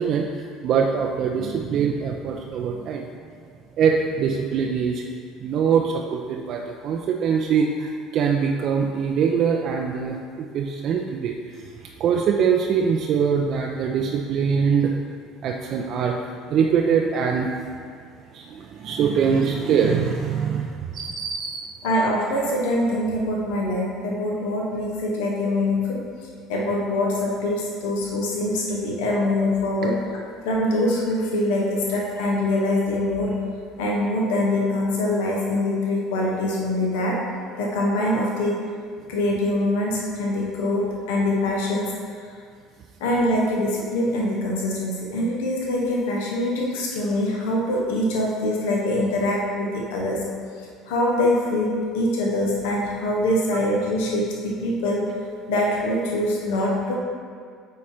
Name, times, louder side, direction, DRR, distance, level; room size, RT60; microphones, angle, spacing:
voice 1, 0.0-3.1 3.8-5.0 5.4-11.6 12.0-15.0 15.4-16.2 16.5-17.5 18.3-21.7, right 6 dB, 50° right, 1 dB, 0.5 m, -23 dB
voice 2, 21.8-26.0 26.5-30.0 30.4-33.4 33.8-37.2 37.6-38.6 39.1-42.2 43.0-50.2 50.9-55.1 55.5-56.9, left 1 dB, 65° left, -2 dB, 1.0 m, -24 dB
8.6 x 4.1 x 4.4 m, 2.1 s
figure-of-eight pair, 60°, 0 cm